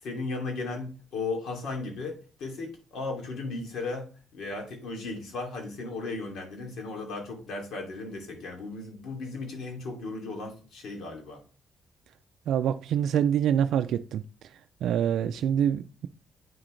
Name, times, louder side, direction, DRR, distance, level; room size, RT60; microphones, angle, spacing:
voice 1, 0.0-11.4, left 3 dB, 70° left, 2.7 m, -36 dB
voice 2, 12.5-14.2 14.8-16.1, right 9 dB, 75° right, 0.3 m, -25 dB
8.9 x 6.1 x 3.3 m
cardioid pair, 90°, 0 cm